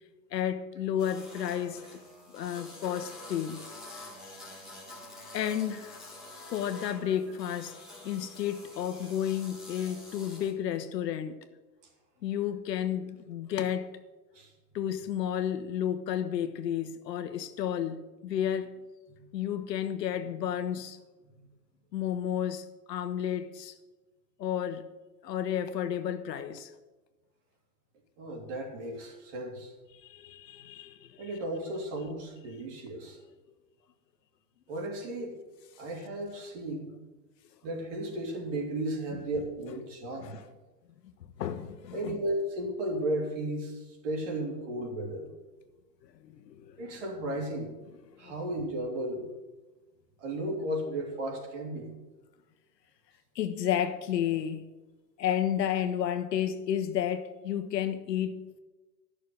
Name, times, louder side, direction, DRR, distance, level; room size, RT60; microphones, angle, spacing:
voice 1, 0.3-2.0 2.3-3.6 5.3-6.0 6.5-7.7 8.0-11.4 12.2-13.9 14.7-18.7 19.3-21.0 21.9-23.7 24.4-24.8 25.2-26.7 29.9-31.3 40.2-40.5 41.4-42.2 46.3-46.9 48.2-48.3 53.3-54.6 55.2-58.6, left 10 dB, 75° left, 1.2 m, -32 dB
sound 1, 1.0-10.5, left 2 dB, ahead, 1.7 m, -47 dB
voice 2, 28.2-29.7 31.2-33.2 34.7-35.4 35.8-36.9 37.6-40.3 41.9-45.3 46.8-47.7 48.2-49.3 50.2-51.9, right 1 dB, 45° right, 3.2 m, -34 dB
12.0 x 6.6 x 7.8 m
supercardioid pair, 170°, 49 cm